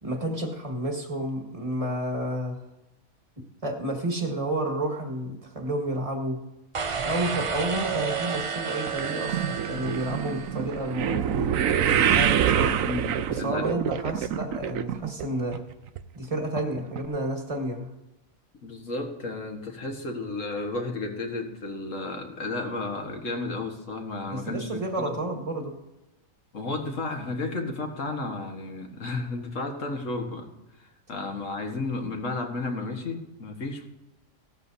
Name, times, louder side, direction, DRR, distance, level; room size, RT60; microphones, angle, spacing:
voice 1, 0.0-2.6 3.6-6.4 7.0-12.8 13.3-15.6 16.1-17.9 24.3-25.8, right 1 dB, 25° right, 2 dB, 1.9 m, -30 dB
sound 1, 6.7-10.9, right 6 dB, 40° right, 0.4 m, -31 dB
sound 2, 8.9-15.3 15.5-16.0 16.6-16.7 17.0-17.1, right 9 dB, 75° right, 1.1 m, -26 dB
voice 2, 12.8-13.7 18.6-25.1 26.5-30.5 30.8-33.9, left 3 dB, 65° left, 3 dB, 1.9 m, -33 dB
16.5 x 13.0 x 2.8 m, 0.97 s
omnidirectional pair, 1.4 m